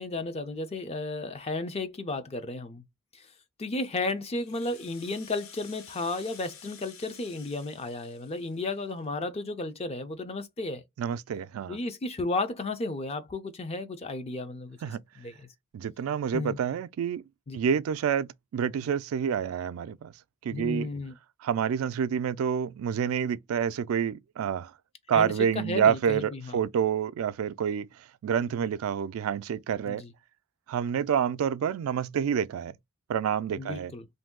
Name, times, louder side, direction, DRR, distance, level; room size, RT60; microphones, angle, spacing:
voice 1, 0.0-2.8 3.1-3.3 3.6-10.8 11.7-15.5 16.3-16.6 17.5-17.6 20.5-21.1 25.1-26.6 29.9-30.1 33.6-34.1, left 2 dB, 30° left, 0.5 m, -33 dB
Rattle (instrument), 4.4-9.0, left 7 dB, 80° left, 0.7 m, -51 dB
voice 2, 11.0-11.8 14.8-15.0 15.7-17.2 17.5-20.1 20.4-20.9 21.4-24.7 25.1-27.9 28.2-30.0 30.7-32.7 33.1-33.9, right 8 dB, 90° right, 0.3 m, -28 dB
2.6 x 2.2 x 3.5 m
head